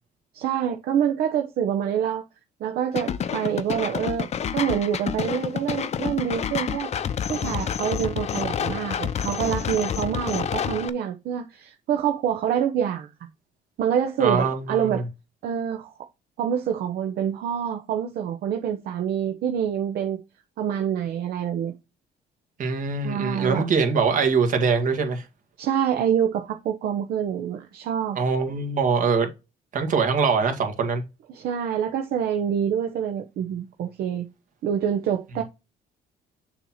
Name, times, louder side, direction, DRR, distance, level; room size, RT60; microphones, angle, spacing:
voice 1, 0.3-2.2 2.6-6.9 7.3-13.1 13.8-15.0 15.4-15.9 16.4-20.2 20.6-21.7 23.0-23.7 25.6-28.2 31.3-34.3 34.6-35.4, right 9 dB, 65° right, 0.9 m, -26 dB
sound 1, 3.0-10.9, left 8 dB, 40° left, 0.6 m, -28 dB
voice 2, 14.2-14.9 22.6-25.2 28.1-29.3 29.7-31.0, right 5 dB, 50° right, 1.8 m, -23 dB
6.8 x 3.0 x 5.6 m
cardioid pair, 110°, 17 cm